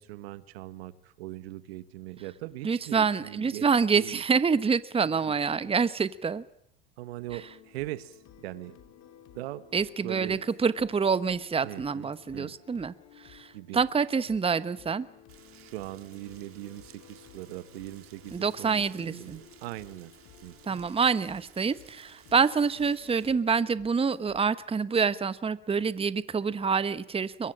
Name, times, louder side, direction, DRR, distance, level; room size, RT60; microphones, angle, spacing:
voice 1, 0.0-4.2 5.1-5.2 5.6-5.7 7.0-8.8 9.3-9.6 10.0-10.4 11.6-12.8 13.5-13.8 15.5-20.1 20.4-20.8, right 16 dB, 80° right, 14 dB, 1.5 m, -41 dB
voice 2, 2.6-6.4 9.7-15.1 18.3-19.4 20.6-27.5, right 5 dB, 20° right, 15 dB, 1.1 m, -27 dB
sound 1, 7.3-24.4, left 10 dB, 60° left, 3.0 m, -55 dB
Rain, 15.3-23.3, right 9 dB, 45° right, 4.0 m, -57 dB
23.0 x 22.5 x 8.7 m, 0.69 s
hypercardioid pair, 80°, 31 cm